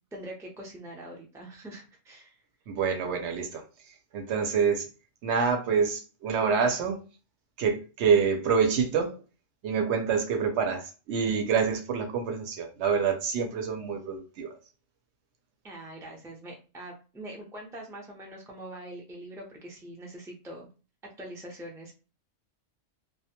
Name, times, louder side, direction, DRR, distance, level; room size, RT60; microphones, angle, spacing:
voice 1, 0.1-2.4 15.6-20.7 21.0-21.9, right 1 dB, 5° right, 0.4 m, -43 dB
voice 2, 2.7-3.6 4.1-4.9 5.2-7.0 7.6-9.1 9.6-14.5, right 6 dB, 80° right, 0.9 m, -26 dB
2.2 x 2.1 x 2.8 m
omnidirectional pair, 1.2 m